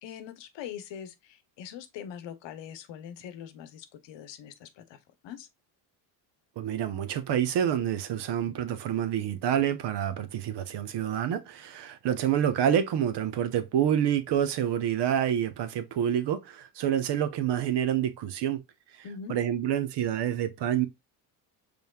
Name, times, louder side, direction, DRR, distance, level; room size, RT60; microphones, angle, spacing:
voice 1, 0.0-5.5 19.0-19.4, left 8 dB, 60° left, 0.9 m, -43 dB
voice 2, 6.6-18.6 19.3-20.9, right 10 dB, 55° right, 0.9 m, -27 dB
5.2 x 3.4 x 2.3 m
supercardioid pair, 80°, 48 cm